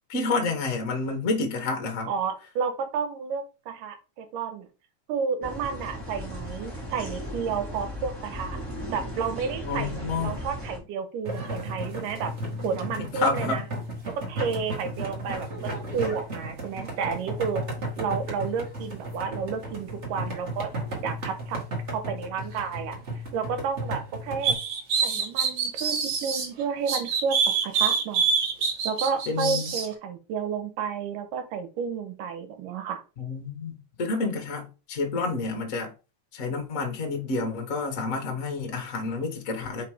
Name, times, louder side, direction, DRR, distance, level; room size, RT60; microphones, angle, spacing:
voice 1, 0.1-2.1 9.6-10.4 13.0-13.6 29.3-29.7 33.2-35.9 36.3-39.8, left 3 dB, 75° left, 0.7 m, -29 dB
voice 2, 2.1-4.7 5.1-8.6 8.9-12.3 12.6-13.7 14.3-17.6 18.0-20.7 21.0-21.6 21.9-23.0 23.3-24.6 25.0-27.4 27.6-28.3 28.8-33.0, right 6 dB, 80° right, 2.5 m, -31 dB
sound 1, 5.4-10.8, equal, 5° right, 1.7 m, -36 dB
sound 2, 11.2-24.5, right 1 dB, 45° right, 0.9 m, -34 dB
sound 3, 24.4-26.5 26.9-29.9, right 6 dB, 60° right, 2.7 m, -25 dB
5.1 x 4.1 x 4.9 m
omnidirectional pair, 4.0 m